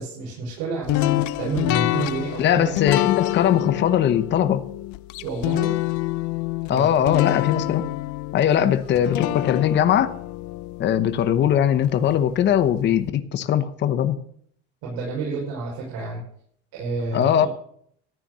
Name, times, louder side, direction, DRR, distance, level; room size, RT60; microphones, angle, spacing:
voice 1, 0.0-2.7 3.4-3.7 5.2-5.8 6.7-7.2 14.8-16.2 16.7-17.5, right 4 dB, 75° right, -3 dB, 5.7 m, -30 dB
sound 1, 0.9-11.9, left 18 dB, 75° left, 0.7 m, -27 dB
voice 2, 2.4-4.6 6.7-7.9 8.3-10.1 10.8-14.2 17.1-17.5, left 10 dB, 40° left, 11 dB, 1.0 m, -20 dB
14.0 x 9.2 x 6.8 m, 0.64 s
cardioid pair, 165°, 29 cm